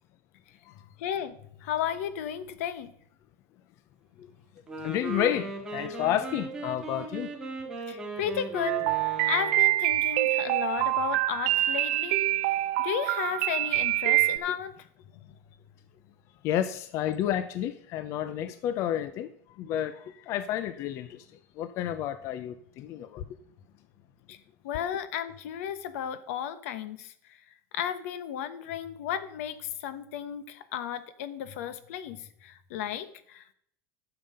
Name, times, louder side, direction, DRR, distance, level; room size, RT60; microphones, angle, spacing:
voice 1, 1.0-2.9 7.9-12.2 12.8-14.8 24.3-24.4 24.6-27.1 27.7-33.5, left 9 dB, 75° left, 1.1 m, -34 dB
Wind instrument woodwind instrument, 4.6-9.8, right 3 dB, 10° right, 1.9 m, -37 dB
voice 2, 4.8-7.3 16.4-21.3 21.6-23.2, left 11 dB, 40° left, 0.5 m, -31 dB
sound 1, 8.7-14.4, right 16 dB, 60° right, 0.6 m, -26 dB
11.0 x 7.0 x 5.5 m
supercardioid pair, 165°, 8 cm